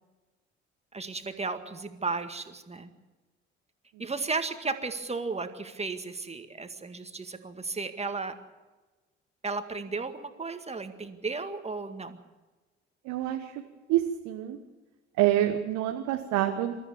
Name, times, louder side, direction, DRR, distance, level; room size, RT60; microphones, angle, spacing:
voice 1, 0.9-2.9 4.0-8.4 9.4-12.2, right 4 dB, 20° right, 8 dB, 2.0 m, -34 dB
voice 2, 13.0-13.6 13.9-14.6 15.2-16.8, right 13 dB, 60° right, 4 dB, 1.3 m, -27 dB
27.0 x 14.0 x 7.2 m, 1.2 s
figure-of-eight pair, 50°, 33 cm